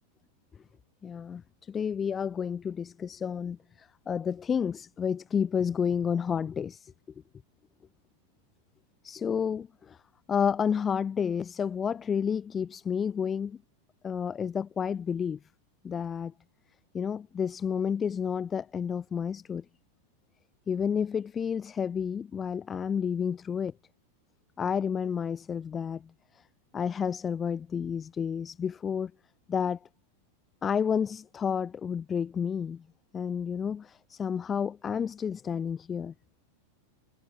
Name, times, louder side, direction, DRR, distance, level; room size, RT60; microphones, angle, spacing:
voice 1, 1.0-1.4 1.7-6.9 9.0-10.0 10.3-13.6 14.0-15.4 15.8-16.3 16.9-19.6 20.7-23.7 24.6-26.0 26.7-29.1 29.5-29.8 30.6-32.8 33.1-36.1, left 7 dB, 20° left, 7.6 m, -30 dB
figure-of-eight pair, 90°, 0 cm